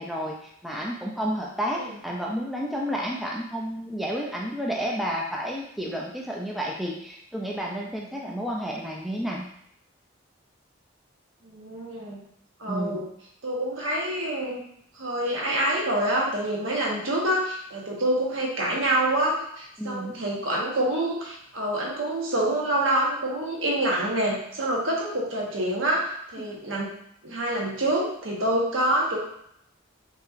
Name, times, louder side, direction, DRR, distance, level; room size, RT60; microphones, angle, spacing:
voice 1, 0.0-9.5 12.6-13.0 19.8-20.1, equal, ahead, -3 dB, 0.4 m, -31 dB
voice 2, 11.4-12.2 12.6-13.0 13.4-14.6 14.9-26.9 27.2-29.2, right 1 dB, 75° right, -3 dB, 1.2 m, -26 dB
5.3 x 2.9 x 2.5 m, 0.72 s
head